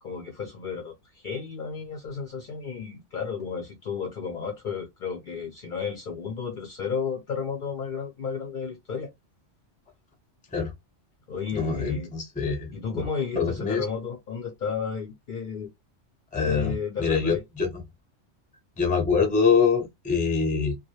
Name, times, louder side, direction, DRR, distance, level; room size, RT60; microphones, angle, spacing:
voice 1, 0.0-9.1 11.3-12.1 12.7-15.7 16.4-17.4, left 6 dB, 60° left, 0.5 m, -33 dB
voice 2, 11.5-13.0 13.4-13.8 16.3-16.7 17.0-17.7 18.8-20.8, left 5 dB, 10° left, 0.4 m, -24 dB
2.3 x 2.1 x 2.8 m
omnidirectional pair, 1.2 m